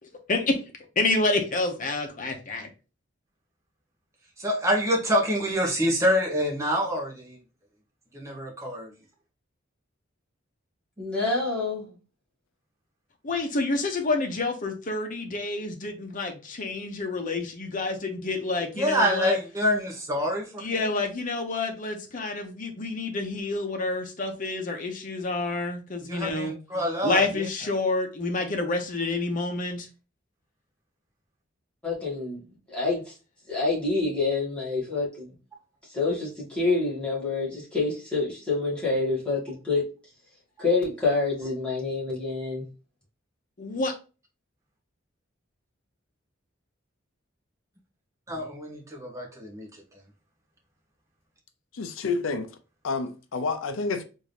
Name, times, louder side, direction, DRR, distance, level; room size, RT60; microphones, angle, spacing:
voice 1, 1.0-2.7 13.2-19.4 20.6-26.5 27.0-29.9 43.6-43.9, left 3 dB, 45° left, 0.8 m, -28 dB
voice 2, 4.4-7.4 8.1-8.9 18.8-20.6 26.0-27.2 48.3-49.7, equal, 15° right, 0.9 m, -26 dB
voice 3, 11.0-11.9 31.8-33.1 33.5-35.3 35.9-39.9 40.6-42.7, left 3 dB, 5° left, 1.8 m, -27 dB
voice 4, 51.8-52.5 52.8-54.0, left 4 dB, 80° left, 0.5 m, -29 dB
3.7 x 2.6 x 3.2 m
head